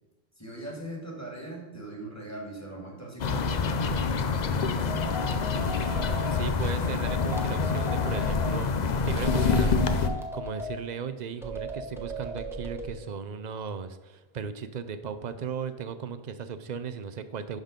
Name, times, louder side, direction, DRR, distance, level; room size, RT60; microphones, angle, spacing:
voice 1, 0.4-4.0, right 1 dB, 15° left, -2 dB, 2.0 m, -40 dB
sound 1, 3.2-10.1, left 5 dB, 50° left, 0.6 m, -26 dB
sound 2, 4.9-6.4 7.1-8.6 9.2-10.8 11.4-12.9, left 1 dB, 5° right, 0.9 m, -37 dB
voice 2, 5.6-17.6, right 6 dB, 50° right, 11 dB, 0.6 m, -37 dB
11.5 x 4.0 x 5.1 m, 1.2 s
omnidirectional pair, 1.1 m